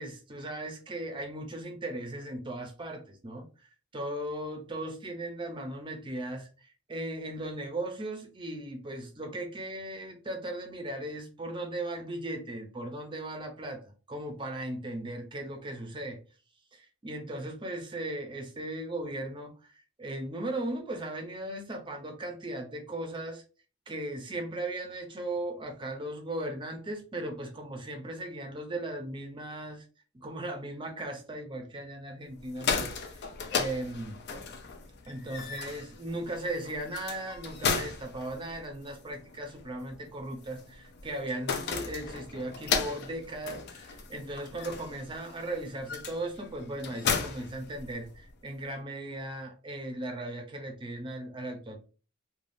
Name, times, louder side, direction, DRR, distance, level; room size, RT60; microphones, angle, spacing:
voice 1, 0.0-3.5 3.9-16.2 16.7-19.5 20.0-23.4 23.9-29.8 30.1-33.2 33.5-34.2 35.1-51.9, right 1 dB, 25° right, 4 dB, 0.5 m, -37 dB
sound 1, 32.4-48.3, left 5 dB, 50° left, 0.4 m, -36 dB
3.3 x 2.2 x 2.5 m, 0.37 s
head